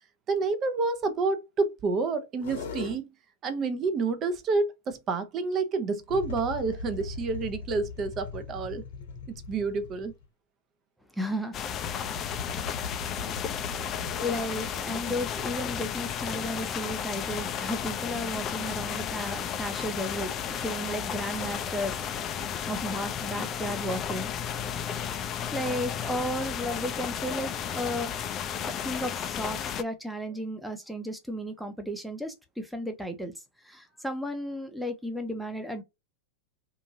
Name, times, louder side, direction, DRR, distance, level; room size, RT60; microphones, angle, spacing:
voice 1, 0.3-3.1 3.4-8.8 9.5-10.1, right 4 dB, 35° right, 0.7 m, -29 dB
sound 1, 2.4-3.0 6.1-10.2 11.7-14.8, left 4 dB, 70° left, 0.9 m, -39 dB
voice 2, 11.1-12.3 14.2-22.0 22.7-25.1 25.5-28.1 28.7-33.3 33.6-35.8, equal, ahead, 0.8 m, -34 dB
sound 2, 11.5-29.8, left 8 dB, 35° left, 0.4 m, -33 dB
2.8 x 2.6 x 2.6 m
hypercardioid pair, 105°, 0 cm